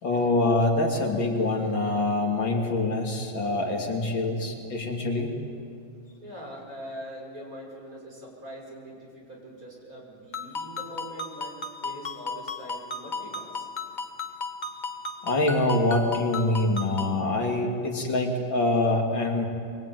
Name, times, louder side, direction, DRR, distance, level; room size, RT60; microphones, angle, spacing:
voice 1, 0.0-5.3 15.2-19.5, left 2 dB, 65° left, 1 dB, 3.3 m, -25 dB
voice 2, 6.2-11.5 11.8-13.7, right 1 dB, 40° right, -2 dB, 6.4 m, -42 dB
Ringtone, 10.3-17.2, left 3 dB, 25° left, 1.1 m, -35 dB
24.0 x 22.5 x 9.2 m, 2.3 s
omnidirectional pair, 2.2 m